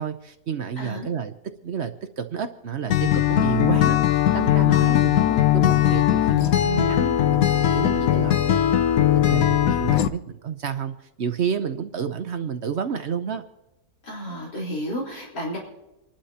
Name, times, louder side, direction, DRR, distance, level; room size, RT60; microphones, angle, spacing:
voice 1, 0.0-1.3 1.6-8.6 9.1-13.4, right 7 dB, 55° right, 8 dB, 0.9 m, -30 dB
voice 2, 0.8-1.1 4.7-4.9 14.0-15.6, equal, 85° left, -5 dB, 4.6 m, -32 dB
Acoustic guitar, 2.9-10.1, left 12 dB, 65° left, 1.0 m, -19 dB
28.5 x 11.5 x 2.9 m, 0.95 s
omnidirectional pair, 1.8 m